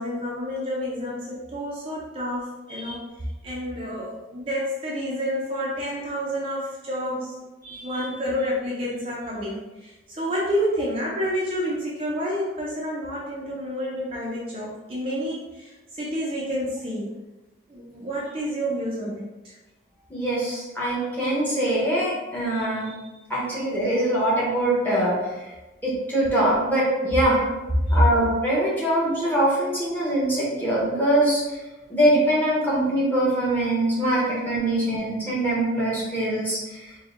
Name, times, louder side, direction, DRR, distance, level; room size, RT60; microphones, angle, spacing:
voice 1, 0.0-3.0 3.4-7.4 7.8-17.1 17.7-19.6 27.3-27.5 27.8-27.9 34.2-34.3 34.6-34.7, equal, 30° right, -6 dB, 0.6 m, -29 dB
voice 2, 7.6-8.1 20.1-23.0 23.3-25.5 25.8-27.4 27.9-31.4 31.9-36.9, right 1 dB, 10° left, -7 dB, 1.2 m, -23 dB
4.4 x 2.3 x 3.7 m, 1.1 s
head